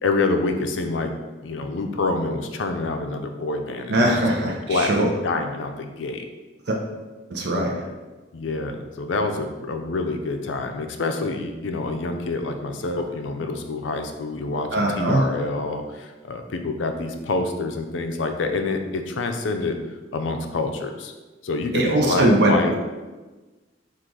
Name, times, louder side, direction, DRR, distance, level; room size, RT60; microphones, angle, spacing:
voice 1, 0.0-1.1 1.4-4.9 5.2-6.2 8.3-19.8 20.1-21.1 21.4-22.8, left 3 dB, 85° left, 5 dB, 0.5 m, -27 dB
voice 2, 3.9-5.1 6.7-6.8 7.3-7.8 14.7-15.2 21.7-22.8, right 1 dB, 65° right, -1 dB, 0.6 m, -21 dB
3.8 x 2.5 x 4.6 m, 1.2 s
head